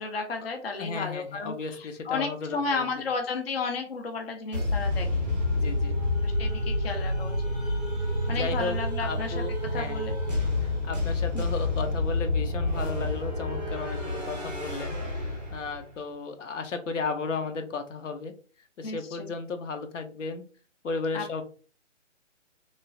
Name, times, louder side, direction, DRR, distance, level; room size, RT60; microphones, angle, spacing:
voice 1, 0.0-5.1 6.2-7.3 8.3-10.2 11.3-11.4 18.8-19.3 21.1-21.4, left 4 dB, 55° left, 4 dB, 0.5 m, -33 dB
voice 2, 0.8-2.8 5.5-5.9 8.3-10.1 10.6-18.3 18.8-20.4 20.8-21.4, left 4 dB, 80° left, 6 dB, 0.7 m, -34 dB
sound 1, 4.5-15.9, left 2 dB, 5° right, 0.8 m, -29 dB
3.1 x 2.3 x 2.4 m, 0.39 s
hypercardioid pair, 180°, 37 cm